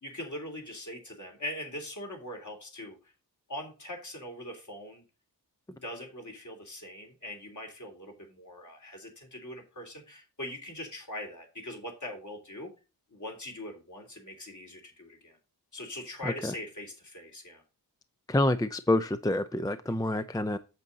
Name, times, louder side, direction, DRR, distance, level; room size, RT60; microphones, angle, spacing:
voice 1, 0.0-3.0 3.5-5.0 5.7-12.7 13.1-15.4 15.7-17.6, left 1 dB, 50° left, 3.4 m, -41 dB
voice 2, 16.2-16.5 18.3-20.6, left 1 dB, 10° left, 0.5 m, -27 dB
8.1 x 7.5 x 4.0 m
wide cardioid pair, 90°, 39 cm